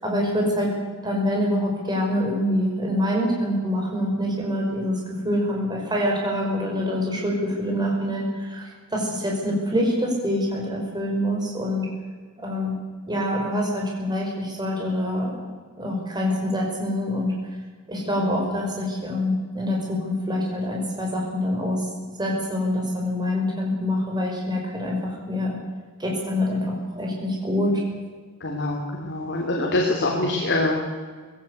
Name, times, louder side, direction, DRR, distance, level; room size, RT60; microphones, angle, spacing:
voice 1, 0.0-0.7 1.0-11.9 12.4-12.7 13.1-15.5 15.8-17.3 17.9-21.8 22.2-25.6 26.0-27.8, left 1 dB, 20° right, -1 dB, 5.6 m, -25 dB
voice 2, 28.4-30.9, left 2 dB, 50° left, -1 dB, 3.5 m, -24 dB
21.0 x 17.0 x 8.2 m, 1.5 s
head